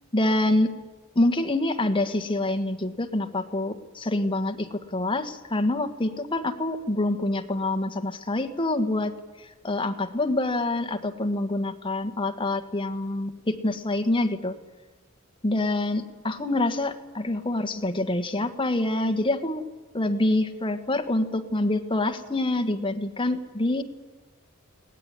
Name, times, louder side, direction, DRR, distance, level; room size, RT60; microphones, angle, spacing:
voice 1, 0.1-0.7 1.1-9.1 9.6-14.5 15.4-19.7 19.9-23.8, left 2 dB, 25° left, 7 dB, 1.5 m, -26 dB
22.5 x 18.5 x 9.8 m, 1.2 s
head